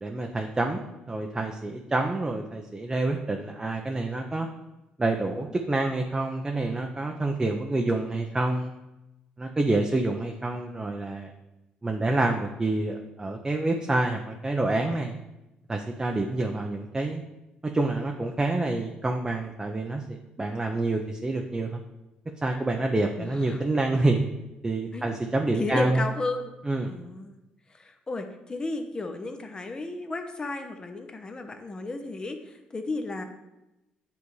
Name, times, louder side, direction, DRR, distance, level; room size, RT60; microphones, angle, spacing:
voice 1, 0.0-4.5 5.0-8.7 9.4-11.3 11.8-15.2 15.7-17.2 17.6-21.8 22.4-24.2 24.6-26.0 26.7-26.9, right 2 dB, 20° right, 2 dB, 0.6 m, -27 dB
voice 2, 23.2-23.6 24.9-25.1 25.6-27.4 27.7-33.2, left 2 dB, 25° left, 6 dB, 0.8 m, -34 dB
9.6 x 3.4 x 3.2 m, 0.96 s
cardioid pair, 90°, 3 cm